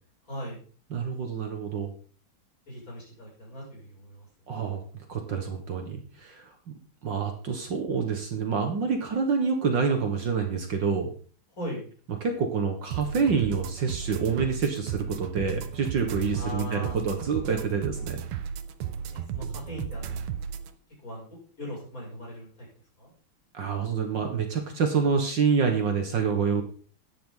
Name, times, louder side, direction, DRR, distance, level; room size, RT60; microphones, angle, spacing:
voice 1, 0.3-0.6 2.7-4.3 11.6-11.9 16.3-17.0 19.1-20.2 21.0-21.3 21.6-22.7 23.0-23.1, equal, 35° left, -4 dB, 7.1 m, -38 dB
voice 2, 0.9-1.9 4.5-4.8 5.1-6.5 7.0-11.1 12.2-18.2 23.5-26.6, right 5 dB, 60° right, 4 dB, 2.1 m, -27 dB
sound 1, 12.9-20.7, right 8 dB, 90° right, 1.8 m, -35 dB
12.0 x 10.5 x 3.9 m, 0.40 s
omnidirectional pair, 2.4 m